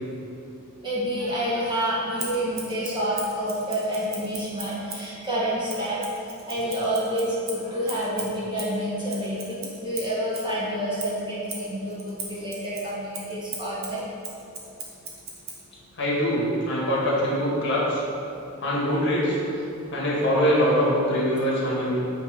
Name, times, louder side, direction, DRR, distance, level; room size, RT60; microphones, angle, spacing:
voice 1, 0.8-6.0 6.5-14.0, equal, 20° right, -8 dB, 1.6 m, -28 dB
Scissors, 2.2-5.1 5.7-10.5 11.0-15.6, right 4 dB, 45° right, 1.0 m, -39 dB
voice 2, 16.0-18.0 18.6-19.4 19.9-22.0, equal, 55° left, -6 dB, 1.7 m, -23 dB
8.8 x 3.5 x 5.1 m, 2.8 s
head